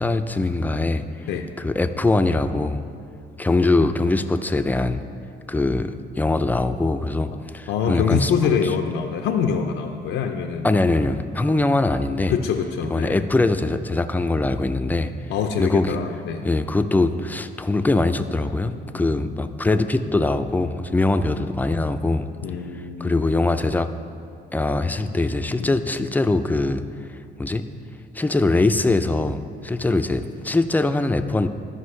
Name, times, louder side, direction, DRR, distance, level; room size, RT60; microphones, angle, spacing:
voice 1, 0.0-1.3 1.6-2.8 3.4-5.0 5.5-8.7 10.6-12.4 12.9-15.1 15.6-16.0 16.4-22.3 22.7-23.9 24.5-26.8 27.4-27.7 28.1-31.5, left 2 dB, 10° left, 9 dB, 0.4 m, -22 dB
voice 2, 7.7-10.7 12.3-13.2 15.3-16.4 18.9-19.3 22.4-23.2 25.6-25.7, left 7 dB, 85° left, 4 dB, 0.5 m, -25 dB
13.0 x 5.4 x 3.2 m, 2.4 s
cardioid pair, 90°, 20 cm